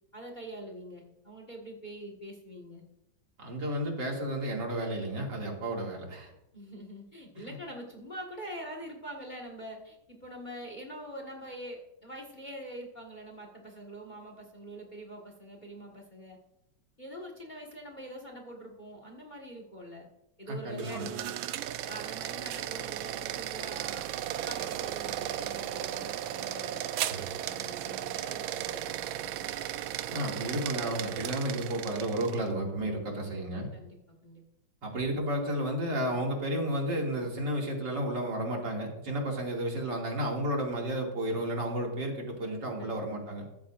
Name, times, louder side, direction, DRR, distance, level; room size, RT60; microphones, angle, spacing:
voice 1, 0.1-2.8 6.5-16.4 17.0-20.1 20.4-21.4 21.9-24.1 24.3-26.8 27.1-29.5 33.7-34.4 42.8-43.0, right 1 dB, 25° left, 2 dB, 1.6 m, -44 dB
voice 2, 3.4-6.3 7.4-7.5 20.5-21.1 27.1-27.2 30.1-33.7 34.8-43.5, right 1 dB, 60° right, -1 dB, 3.1 m, -32 dB
sound 1, 20.7-32.5, right 12 dB, 90° right, 1.4 m, -36 dB
14.0 x 13.5 x 2.5 m, 0.86 s
omnidirectional pair, 2.1 m